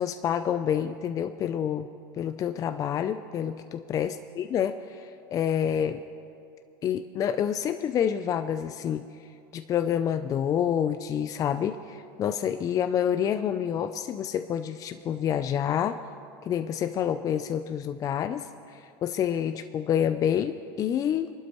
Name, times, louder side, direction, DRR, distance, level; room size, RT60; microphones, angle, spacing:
voice 1, 0.0-1.9 2.2-6.0 6.8-9.1 9.5-16.0 16.5-21.3, left 9 dB, 35° left, 9 dB, 0.4 m, -28 dB
24.5 x 12.0 x 3.1 m, 2.5 s
supercardioid pair, 120°, 11 cm